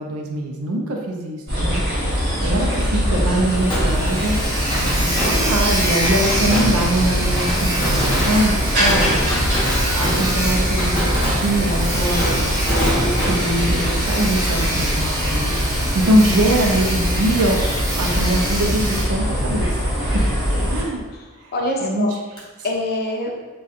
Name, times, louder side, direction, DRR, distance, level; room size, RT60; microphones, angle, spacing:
voice 1, 0.0-1.8 2.4-4.4 4.8-9.5 9.9-11.0 11.3-15.5 15.9-17.6 18.0-19.7 20.1-20.3 20.7-21.0 21.8-22.1, right 1 dB, 85° right, 2 dB, 0.5 m, -22 dB
sound 1, 1.5-20.8, equal, 50° right, 1.2 m, -22 dB
Sawing, 2.2-2.3 2.6-2.7 3.1-3.2 3.3-19.0, right 1 dB, 15° right, 0.6 m, -27 dB
Fireworks, 3.7-15.4 15.6-15.7 22.4-22.5, equal, 20° left, 0.9 m, -26 dB
voice 2, 20.5-22.1 22.6-23.3, left 1 dB, 45° left, -1 dB, 0.5 m, -26 dB
2.5 x 2.3 x 4.0 m, 1.3 s
head